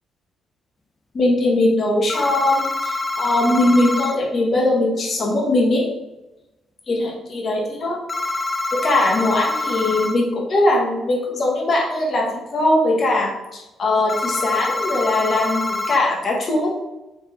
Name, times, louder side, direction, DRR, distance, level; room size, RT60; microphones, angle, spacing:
voice 1, 1.1-5.9 6.9-8.0 8.7-16.7, left 2 dB, 45° left, -2 dB, 1.0 m, -20 dB
sound 1, 2.1-4.2 8.1-10.2 14.1-16.0, left 2 dB, 25° left, 0.3 m, -25 dB
3.4 x 3.2 x 3.3 m, 1.0 s
cardioid pair, 90°, 0 cm